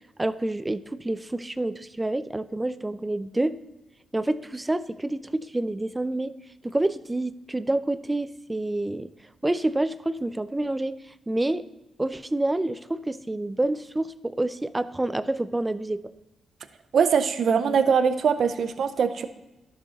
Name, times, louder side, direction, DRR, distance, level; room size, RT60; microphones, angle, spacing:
voice 1, 0.2-3.6 4.1-6.3 6.6-9.1 9.4-11.0 11.3-11.6 12.0-16.0, right 2 dB, 15° right, 14 dB, 0.5 m, -28 dB
voice 2, 16.9-19.3, right 6 dB, 65° right, 10 dB, 0.6 m, -22 dB
11.5 x 6.7 x 3.9 m, 1.0 s
cardioid pair, 70°, 0 cm